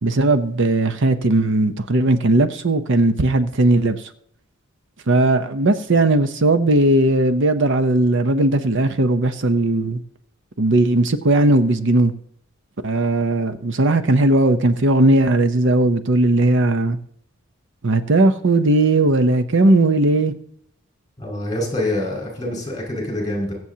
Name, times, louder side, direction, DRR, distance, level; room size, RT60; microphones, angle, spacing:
voice 1, 0.0-4.1 5.1-10.0 10.6-12.1 12.8-17.0 17.8-20.3, right 2 dB, 65° right, 10 dB, 0.8 m, -17 dB
voice 2, 21.2-23.5, left 1 dB, 20° left, -1 dB, 5.6 m, -25 dB
23.0 x 7.9 x 2.8 m, 0.68 s
head